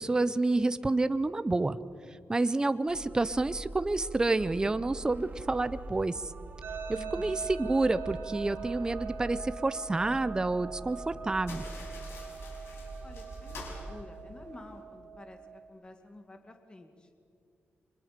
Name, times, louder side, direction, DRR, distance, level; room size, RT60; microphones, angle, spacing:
voice 1, 0.0-1.8 2.1-6.3 6.9-11.6, right 2 dB, 20° right, 13 dB, 0.6 m, -29 dB
sound 1, 2.9-14.0, right 2 dB, 45° right, 1.6 m, -44 dB
sound 2, 6.6-15.7, right 6 dB, 65° right, 3.3 m, -43 dB
voice 2, 6.9-7.5 13.0-15.4 15.7-17.1, left 2 dB, 25° left, 5 dB, 2.1 m, -50 dB
sound 3, 11.4-14.8, left 3 dB, 90° left, 5.7 m, -48 dB
29.5 x 24.5 x 5.2 m, 2.3 s
wide cardioid pair, 120°, 4 cm